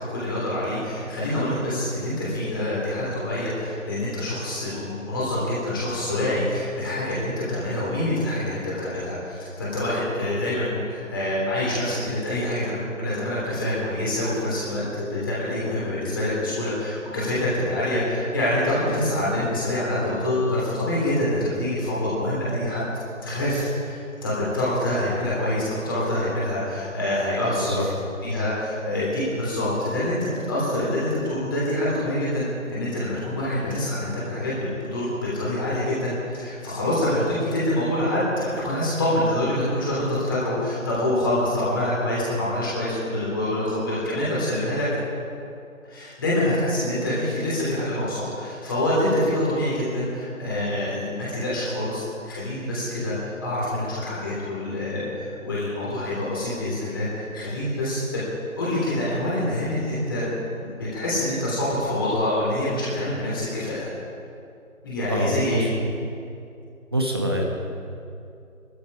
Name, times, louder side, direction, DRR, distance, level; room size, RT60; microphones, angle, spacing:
voice 1, 0.1-22.8 23.2-27.9 28.2-32.4 32.7-34.5 34.9-44.9 45.8-58.2 58.6-60.3 60.6-63.9 64.8-65.7, left 1 dB, 15° left, -8 dB, 3.2 m, -26 dB
voice 2, 27.5-27.8 65.1-65.7 66.9-67.4, equal, 20° right, 0 dB, 1.2 m, -25 dB
21.0 x 13.0 x 5.1 m, 2.6 s
figure-of-eight pair, 160°, 41 cm